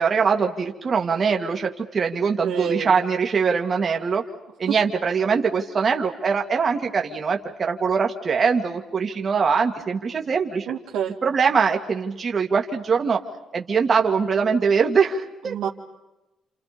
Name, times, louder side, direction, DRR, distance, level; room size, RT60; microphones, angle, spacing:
voice 1, 0.0-4.2 4.6-10.7 11.2-13.2 13.5-15.7, right 5 dB, 45° right, 2 dB, 2.3 m, -22 dB
voice 2, 2.4-3.0 10.7-11.2 15.4-15.7, right 8 dB, 85° right, 1 dB, 2.8 m, -28 dB
29.5 x 27.5 x 5.3 m, 0.99 s
cardioid pair, 90°, 0 cm